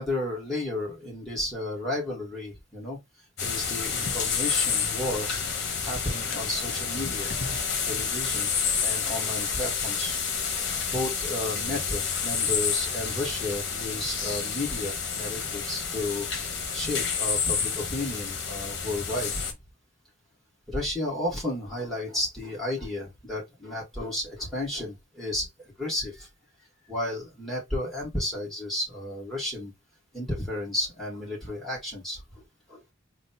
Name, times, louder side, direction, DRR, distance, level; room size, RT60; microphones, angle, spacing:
voice 1, 0.0-3.0 3.4-5.3 5.6-7.3 7.8-10.2 10.9-16.5 16.7-19.4 20.7-25.5 25.8-26.3 26.9-29.7 30.1-32.9, left 1 dB, ahead, 2.3 m, -33 dB
sound 1, 3.4-19.5, left 6 dB, 55° left, 1.1 m, -29 dB
4.0 x 2.4 x 4.1 m
head